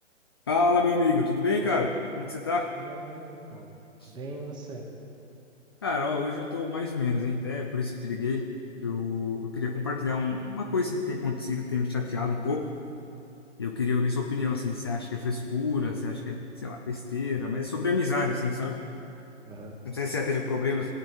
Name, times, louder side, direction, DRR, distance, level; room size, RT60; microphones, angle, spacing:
voice 1, 0.5-2.7 4.0-4.1 5.8-8.5 8.8-12.7 13.6-18.8 19.8-20.9, left 4 dB, 20° left, 1 dB, 0.3 m, -28 dB
voice 2, 2.8-3.7 4.1-4.8 19.4-19.8, right 2 dB, 10° right, 1 dB, 1.0 m, -41 dB
18.5 x 8.7 x 2.6 m, 2.7 s
figure-of-eight pair, 130°, 37 cm